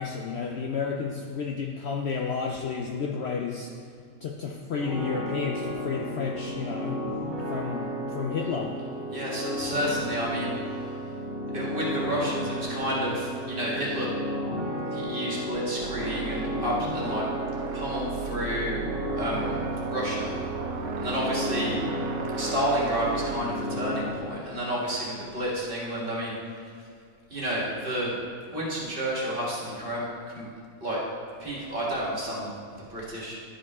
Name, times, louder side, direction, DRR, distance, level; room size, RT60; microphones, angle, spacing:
voice 1, 0.0-3.7 4.2-7.0 7.5-8.7, left 5 dB, 60° left, 1 dB, 0.7 m, -31 dB
sound 1, 4.8-24.0, equal, ahead, 1.8 m, -33 dB
voice 2, 9.1-10.5 11.5-14.1 14.9-17.3 17.7-18.8 19.2-19.6 19.9-20.4 21.0-21.8 22.4-26.4 27.3-28.2 28.5-30.0 30.3-30.5 30.8-31.0 31.4-33.3, equal, 40° right, -5 dB, 1.9 m, -30 dB
sound 2, 15.8-23.4, right 5 dB, 80° right, 1.1 m, -35 dB
11.0 x 5.4 x 3.6 m, 2.3 s
omnidirectional pair, 1.5 m